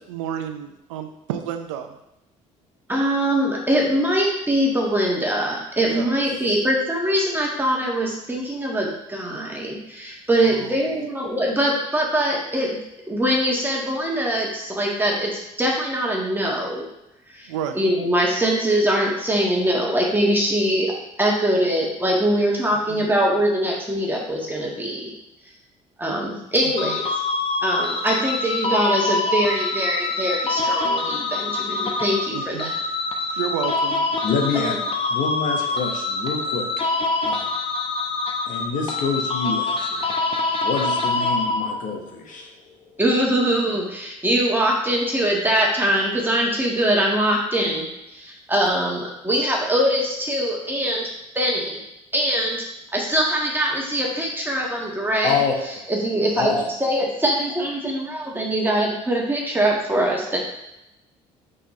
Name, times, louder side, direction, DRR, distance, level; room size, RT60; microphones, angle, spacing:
voice 1, 0.1-1.9 5.9-6.1 10.4-11.0 17.5-17.8 22.9-23.1 26.8-26.9 32.3-32.7 33.4-34.1, right 9 dB, 85° right, 7 dB, 0.6 m, -31 dB
voice 2, 2.9-12.8 13.1-16.9 17.3-17.5 17.7-20.9 21.2-25.1 26.0-27.1 27.6-32.8 34.5-34.8 43.0-47.9 48.1-51.1 51.4-51.8 52.1-52.6 52.9-55.4 55.9-60.4, right 1 dB, 15° right, -2 dB, 1.7 m, -22 dB
sound 1, 26.8-42.0, left 3 dB, 35° left, 1.0 m, -25 dB
voice 3, 34.2-34.7 35.1-36.7 37.2-37.5 38.5-40.0 40.6-42.5 55.2-55.5 56.3-56.5, left 5 dB, 60° left, 1 dB, 1.5 m, -26 dB
5.7 x 5.4 x 3.2 m, 0.87 s
hypercardioid pair, 60°, 16 cm